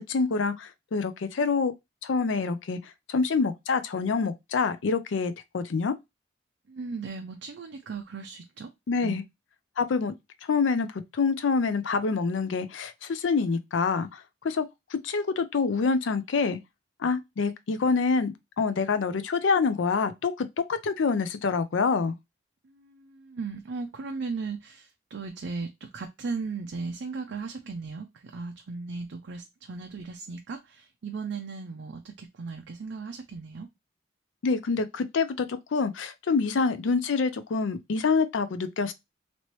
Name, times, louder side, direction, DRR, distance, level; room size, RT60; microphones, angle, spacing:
voice 1, 0.0-1.7 2.0-2.8 3.1-5.9 8.9-9.2 9.8-10.1 10.4-14.7 14.9-16.6 17.0-22.2 34.4-38.9, left 4 dB, 80° left, 0.5 m, -26 dB
voice 2, 6.7-8.7 9.0-9.2 22.6-33.7, right 4 dB, 70° right, 0.5 m, -37 dB
3.0 x 2.9 x 2.9 m
head